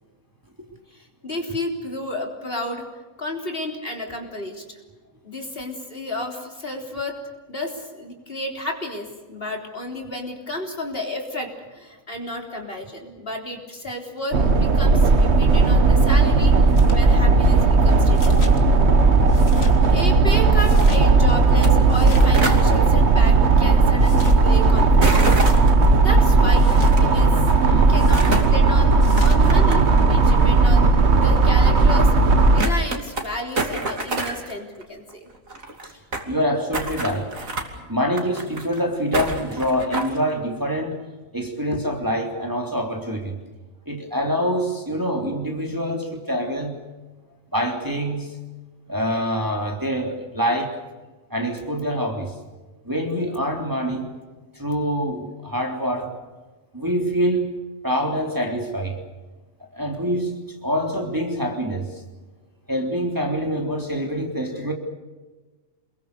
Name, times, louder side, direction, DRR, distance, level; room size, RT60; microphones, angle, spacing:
voice 1, 0.9-2.9 3.2-4.8 5.2-7.2 7.5-16.5 16.9-18.4 19.9-25.2 26.0-27.4 27.9-35.3, left 1 dB, 45° left, 2 dB, 3.9 m, -32 dB
sound 1, 14.3-32.6, right 3 dB, 55° right, 1.7 m, -16 dB
sound 2, 16.7-17.0 18.1-18.6 19.3-19.8 20.5-21.0 21.9-22.4 24.0-24.4 25.2-25.6 26.6-26.9 28.0-28.3 29.0-29.4, left 2 dB, 75° left, 2.9 m, -38 dB
sound 3, 21.5-21.7 21.9-22.6 25.0-25.9 26.8-27.0 27.9-28.5 29.0-30.0 30.3-30.4 31.2-31.3 31.8-31.9 32.1-32.2 32.6-33.3 33.6-34.5 34.8-34.9 35.1-35.2 35.3-36.3 36.7-37.7 38.1-38.8 39.1-40.2, right 2 dB, 80° right, 3.4 m, -26 dB
voice 2, 27.6-28.0 36.3-37.4 37.9-41.0 41.3-43.4 43.9-46.8 47.5-48.3 48.9-50.7 51.3-52.3 52.9-54.1 54.6-56.1 56.7-57.5 57.8-59.0 59.7-60.3 60.6-61.9 62.7-64.7, equal, 15° right, 2 dB, 3.3 m, -25 dB
28.5 x 22.5 x 6.8 m, 1.2 s
omnidirectional pair, 1.4 m